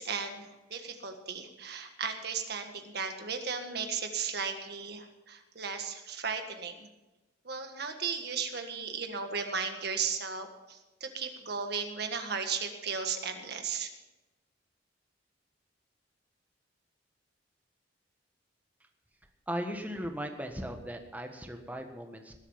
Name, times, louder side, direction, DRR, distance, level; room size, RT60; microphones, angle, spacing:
voice 1, 0.0-6.9 7.4-13.9, right 5 dB, 60° right, 6 dB, 1.7 m, -35 dB
voice 2, 19.5-22.3, equal, 10° right, 4 dB, 1.4 m, -37 dB
19.5 x 8.4 x 5.7 m, 1.1 s
head